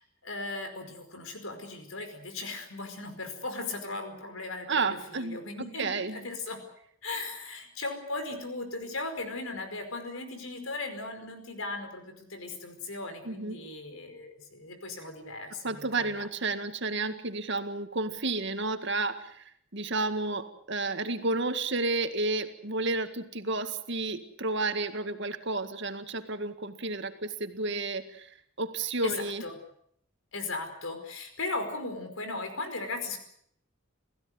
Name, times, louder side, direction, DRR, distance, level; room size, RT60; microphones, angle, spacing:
voice 1, 0.0-4.8 5.1-6.6 7.0-16.2 29.0-29.1 29.4-29.5 30.3-33.2, left 3 dB, 85° left, 7 dB, 5.1 m, -37 dB
voice 2, 4.7-5.4 5.8-6.2 13.3-13.6 15.6-29.4, right 3 dB, 60° right, 8 dB, 2.0 m, -31 dB
28.0 x 16.0 x 7.9 m, 0.67 s
head